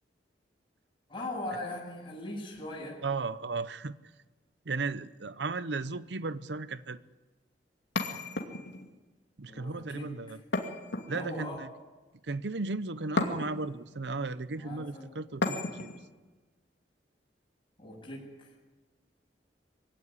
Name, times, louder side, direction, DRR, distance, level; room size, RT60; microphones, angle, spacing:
voice 1, 1.1-3.0 9.4-10.4 11.1-11.6 14.5-15.1 17.8-18.5, left 1 dB, 30° left, -5 dB, 7.9 m, -40 dB
voice 2, 3.0-4.0 4.7-7.0 9.4-10.4 11.1-11.7 12.2-15.9, right 3 dB, 75° right, 15 dB, 0.8 m, -35 dB
sound 1, 8.0-8.9 10.5-11.5 13.2-13.8 15.4-16.0, left 2 dB, 85° left, 2.5 m, -33 dB
23.0 x 17.0 x 9.9 m, 1.2 s
head